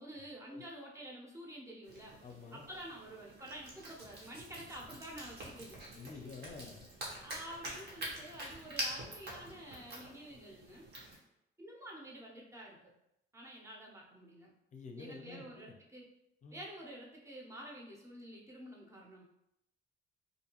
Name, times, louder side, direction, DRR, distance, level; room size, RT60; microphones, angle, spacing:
voice 1, 0.0-2.2 2.5-5.8 7.2-10.9 11.6-12.9 13.3-14.5 15.0-16.0 16.5-19.2, right 1 dB, 15° right, -2 dB, 0.7 m, -49 dB
sound 1, 1.8-11.2, right 1 dB, 55° right, 0.9 m, -46 dB
voice 2, 2.2-2.7 6.0-6.8 14.7-15.7 16.4-16.6, left 4 dB, 40° left, 3 dB, 0.5 m, -49 dB
2.6 x 2.2 x 2.9 m, 0.84 s
cardioid pair, 90°, 20 cm